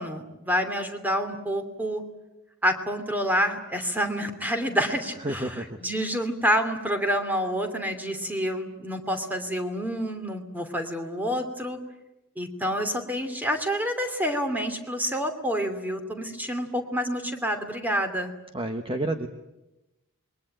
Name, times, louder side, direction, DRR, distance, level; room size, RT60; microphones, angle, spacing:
voice 1, 0.0-2.0 2.6-11.8 12.4-18.3, equal, 10° right, 7 dB, 2.9 m, -28 dB
voice 2, 5.2-5.8 18.5-19.3, right 1 dB, 25° right, 6 dB, 1.3 m, -30 dB
27.5 x 22.5 x 9.1 m, 0.97 s
head